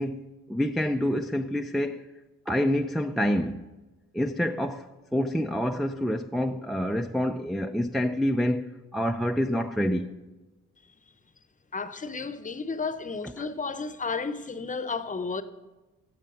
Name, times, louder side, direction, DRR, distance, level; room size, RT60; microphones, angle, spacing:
voice 1, 0.0-2.0 2.5-3.7 4.1-10.1 13.4-13.5, equal, ahead, 0.4 m, -27 dB
voice 2, 11.7-15.4, left 4 dB, 25° left, 0.8 m, -32 dB
15.5 x 7.3 x 5.5 m
cardioid pair, 90°, 30 cm